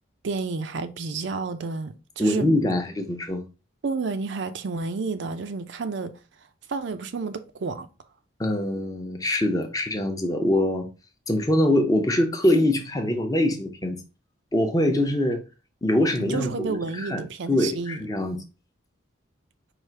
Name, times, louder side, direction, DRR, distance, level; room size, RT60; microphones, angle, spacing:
voice 1, 0.2-2.5 3.8-6.2 6.7-7.9 16.2-18.0, right 4 dB, 60° right, 0.5 m, -30 dB
voice 2, 2.2-3.5 8.4-10.9 11.3-14.0 14.5-15.4 15.8-18.4, left 1 dB, 15° left, 0.6 m, -23 dB
4.8 x 2.4 x 4.5 m
head